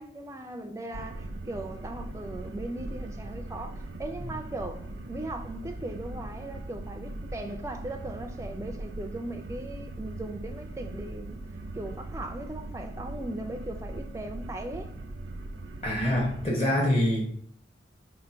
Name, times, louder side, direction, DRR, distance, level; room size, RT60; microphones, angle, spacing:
voice 1, 0.0-11.4 11.7-14.9, right 1 dB, 15° right, 0.3 m, -38 dB
sound 1, 0.9-16.5, right 2 dB, 85° right, 0.5 m, -40 dB
voice 2, 15.8-17.2, left 1 dB, 30° left, 1.0 m, -25 dB
4.2 x 2.2 x 4.4 m
head